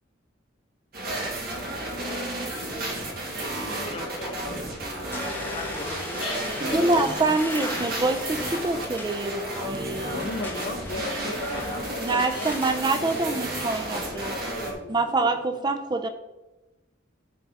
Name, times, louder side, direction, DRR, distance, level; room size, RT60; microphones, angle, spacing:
sound 1, 0.9-14.7, right 1 dB, 50° right, 2.2 m, -32 dB
voice 1, 1.9-3.0 3.3-4.6 5.3-7.2 9.2-9.4, left 2 dB, 25° left, -3 dB, 2.1 m, -38 dB
sound 2, 5.1-14.1, left 2 dB, 10° left, 1.2 m, -39 dB
sound 3, 6.0-12.7, left 1 dB, 75° left, 2.1 m, -45 dB
voice 2, 6.6-10.2 12.0-14.3 14.9-16.1, right 3 dB, 20° right, 7 dB, 0.4 m, -26 dB
voice 3, 10.1-13.8 14.1-15.6, left 2 dB, 60° left, 5 dB, 0.8 m, -37 dB
10.5 x 5.7 x 4.1 m, 1.0 s
head